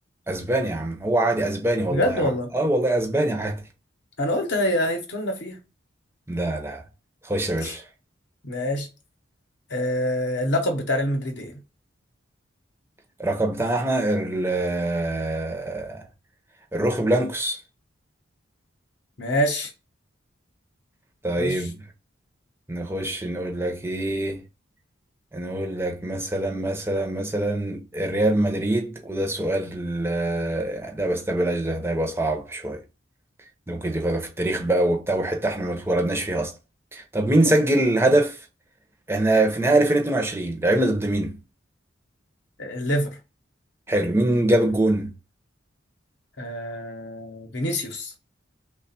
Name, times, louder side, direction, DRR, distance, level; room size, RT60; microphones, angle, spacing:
voice 1, 0.3-3.6 6.3-6.8 7.2-7.8 13.2-16.0 16.7-17.6 21.2-21.8 22.7-24.4 25.3-32.8 33.7-36.5 36.9-38.4 39.1-41.3 43.9-45.1, right 1 dB, 10° right, 0.6 m, -24 dB
voice 2, 1.9-2.5 4.2-5.6 7.6-7.7 8.4-8.9 9.7-11.6 19.2-19.7 21.4-21.7 42.6-43.2 46.4-48.1, left 1 dB, 55° left, 0.8 m, -26 dB
3.2 x 2.3 x 4.0 m
head